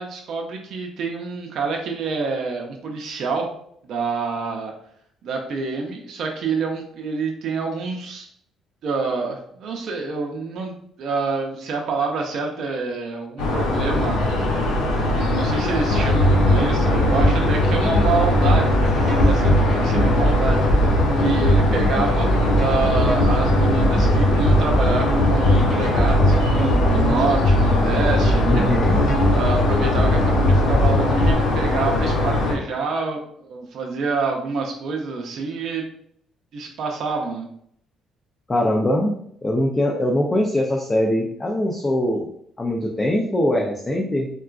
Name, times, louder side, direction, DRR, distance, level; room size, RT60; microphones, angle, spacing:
voice 1, 0.0-3.5 3.8-4.7 5.2-8.3 8.8-14.3 15.0-28.6 29.3-35.9 36.5-37.5, right 4 dB, 65° right, 1 dB, 0.5 m, -27 dB
sound 1, 13.4-32.5, left 2 dB, 85° left, 0.8 m, -22 dB
sound 2, 15.9-31.3, equal, 55° left, 1.4 m, -20 dB
voice 2, 28.4-29.0 38.5-39.2 39.4-42.3 42.6-44.3, left 1 dB, 20° left, -1 dB, 0.4 m, -22 dB
3.7 x 2.3 x 2.4 m, 0.68 s
cardioid pair, 105°, 0 cm